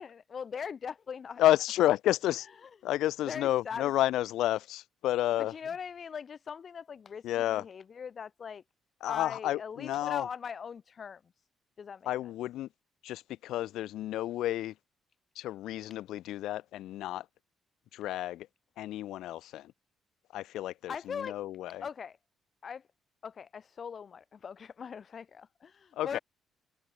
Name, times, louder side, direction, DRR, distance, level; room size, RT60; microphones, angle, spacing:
voice 1, 0.0-1.4 3.3-3.9 5.4-8.6 9.1-11.2 11.8-12.1 20.9-21.4 21.8-22.2 22.6-22.8 23.2-26.2, left 6 dB, 50° left, 1.9 m, -40 dB
voice 2, 1.4-2.5 2.8-5.6 7.2-7.6 9.0-10.3 12.1-12.7 13.0-14.7 15.4-17.3 17.9-18.5 18.8-19.7 20.3-21.9 25.9-26.2, left 14 dB, 85° left, 1.9 m, -30 dB
cardioid pair, 90°, 0 cm